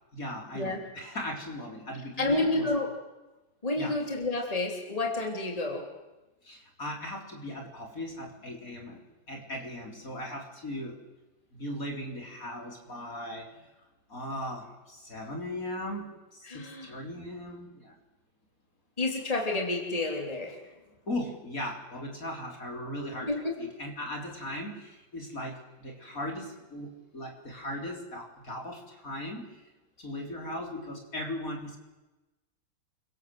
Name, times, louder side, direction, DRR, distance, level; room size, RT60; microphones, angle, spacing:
voice 1, 0.1-2.8 3.8-4.0 6.4-9.0 9.3-11.0 11.5-13.7 14.1-17.9 21.1-29.6 30.0-31.8, left 1 dB, 45° left, 2 dB, 4.6 m, -38 dB
voice 2, 2.2-2.9 3.6-5.8 16.5-16.9 19.0-20.6 23.3-23.5, left 2 dB, 20° left, 2 dB, 3.6 m, -29 dB
29.5 x 24.5 x 7.9 m, 1.1 s
omnidirectional pair, 2.1 m